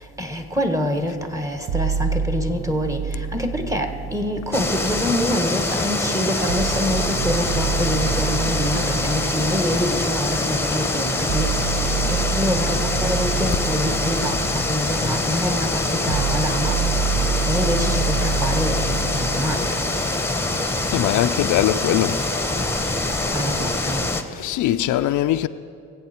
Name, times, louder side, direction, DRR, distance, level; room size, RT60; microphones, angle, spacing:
voice 1, 0.2-11.5 12.1-16.8 17.4-19.8 23.3-24.0, equal, 10° right, 1.5 m, -26 dB
sound 1, 1.7-5.7 6.5-20.5, right 5 dB, 65° right, 0.8 m, -28 dB
sound 2, 4.5-24.2, left 2 dB, 10° left, 1.1 m, -24 dB
voice 2, 20.9-22.2 24.4-25.5, left 13 dB, 75° left, 0.5 m, -21 dB
23.5 x 8.2 x 4.4 m
cardioid pair, 90°, 30 cm